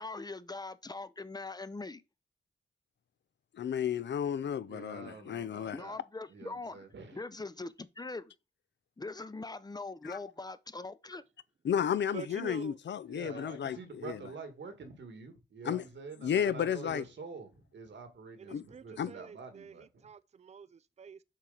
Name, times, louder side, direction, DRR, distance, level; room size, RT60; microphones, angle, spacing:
voice 1, 0.0-2.0 5.7-6.8 7.1-8.3 9.0-11.2, left 3 dB, 20° left, 0.5 m, -42 dB
voice 2, 3.5-5.8 10.0-10.2 11.6-14.2 15.6-15.8 16.2-17.0 18.5-18.6 19.0-19.1, left 8 dB, 75° left, 0.5 m, -32 dB
voice 3, 4.6-6.0 6.3-7.2 13.1-20.1, right 4 dB, 80° right, 1.6 m, -47 dB
voice 4, 12.1-12.8 16.3-16.6 16.8-17.0 18.4-21.2, right 7 dB, 35° right, 0.4 m, -47 dB
7.4 x 4.5 x 3.8 m
wide cardioid pair, 90°, 19 cm